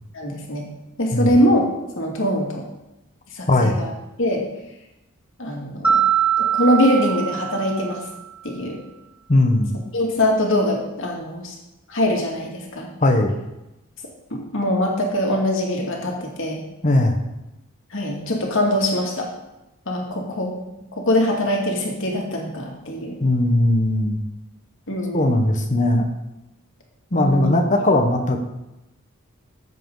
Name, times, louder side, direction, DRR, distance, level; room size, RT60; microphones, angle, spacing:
voice 1, 0.1-0.7 1.0-1.6 2.0-2.6 3.3-3.9 4.2-4.4 5.4-6.0 6.4-8.0 8.4-8.8 9.9-11.5 11.9-12.9 14.3-16.6 17.9-19.3 19.9-20.6 21.0-23.2 24.9-25.4 27.1-27.6, left 1 dB, 60° left, 0 dB, 2.3 m, -22 dB
Mallet percussion, 5.8-8.2, right 8 dB, 5° right, 0.8 m, -22 dB
voice 2, 9.3-9.7 13.0-13.3 16.8-17.2 23.2-24.2 25.1-26.1 27.1-28.4, left 1 dB, 35° left, 5 dB, 1.1 m, -18 dB
14.5 x 7.7 x 3.9 m, 0.94 s
head